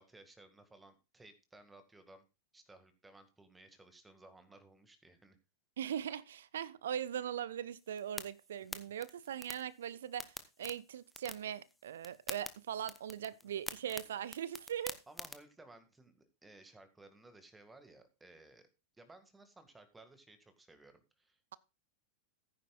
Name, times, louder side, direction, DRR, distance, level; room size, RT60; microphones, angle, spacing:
voice 1, 0.0-2.2 2.5-5.4 8.6-8.9 15.1-18.7 18.9-21.6, right 2 dB, 10° right, 2.0 m, -59 dB
voice 2, 5.8-15.0, right 9 dB, 60° right, 0.6 m, -40 dB
sound 1, 7.8-15.4, left 2 dB, 5° left, 1.0 m, -48 dB
15.5 x 9.5 x 2.4 m
figure-of-eight pair, 90°, 0 cm